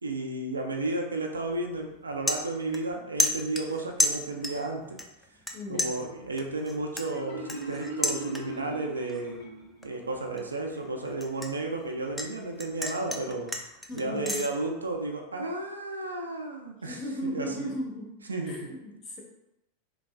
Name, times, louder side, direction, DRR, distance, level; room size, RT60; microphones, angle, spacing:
voice 1, 0.0-5.0 5.7-9.4 9.8-13.5 13.9-17.7 18.3-18.7, right 2 dB, 85° right, 2 dB, 0.4 m, -33 dB
sound 1, 1.3-1.6 1.9-2.9 3.2-4.7 5.0-5.5 5.8-8.7 9.1-9.4 9.8-12.3 12.6-14.5, left 1 dB, 5° left, 0.3 m, -31 dB
voice 2, 5.5-6.0 13.9-14.4 16.8-18.1 18.4-19.2, left 1 dB, 35° left, -3 dB, 0.9 m, -36 dB
Marimba xylophone, 7.1-9.9, right 2 dB, 70° left, 0.8 m, -38 dB
3.3 x 2.3 x 2.2 m, 0.89 s
figure-of-eight pair, 90°, 0 cm